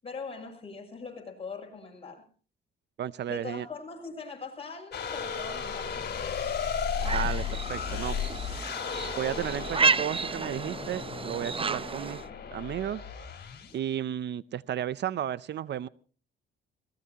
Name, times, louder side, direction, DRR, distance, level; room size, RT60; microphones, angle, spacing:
voice 1, 0.0-2.3 3.3-6.5, left 4 dB, 30° left, 7.4 m, -41 dB
voice 2, 3.0-3.7 7.0-8.2 9.2-12.2 12.5-13.0 13.7-15.9, right 10 dB, 60° right, 0.6 m, -33 dB
sound 1, 4.9-13.8, left 7 dB, 55° left, 4.3 m, -34 dB
sound 2, 7.0-12.3, right 4 dB, 25° right, 0.8 m, -31 dB
22.0 x 19.0 x 2.9 m
cardioid pair, 90°, 20 cm